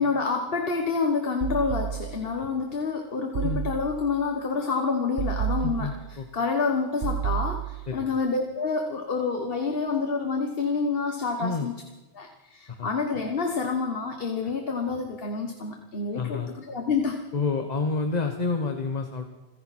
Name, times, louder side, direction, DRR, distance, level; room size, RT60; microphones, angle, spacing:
voice 1, 0.0-11.8 12.1-17.2, left 4 dB, 60° left, 4 dB, 1.6 m, -28 dB
sound 1, 1.4-2.4 3.3-4.2 5.2-6.3 7.0-8.1, right 9 dB, 65° right, 0.9 m, -31 dB
voice 2, 5.6-6.3 7.9-8.0 11.4-11.7 12.7-12.9 16.1-16.5 17.3-19.3, left 4 dB, 40° left, 5 dB, 1.2 m, -29 dB
29.0 x 10.5 x 4.3 m, 1.1 s
omnidirectional pair, 1.1 m